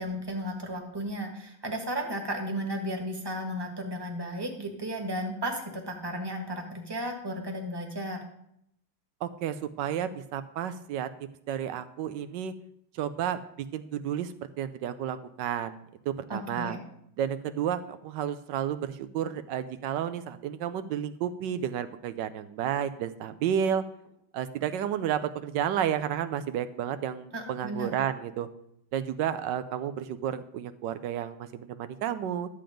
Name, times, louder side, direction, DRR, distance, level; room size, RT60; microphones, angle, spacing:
voice 1, 0.0-8.2 16.3-16.8 27.3-27.9, equal, 15° right, 2 dB, 1.5 m, -34 dB
voice 2, 9.2-11.1 11.5-12.5 12.9-13.4 13.7-15.8 16.1-16.8 17.2-23.8 24.3-28.5 28.9-32.5, right 9 dB, 85° right, 11 dB, 1.3 m, -31 dB
11.5 x 7.7 x 5.1 m, 0.74 s
omnidirectional pair, 1.9 m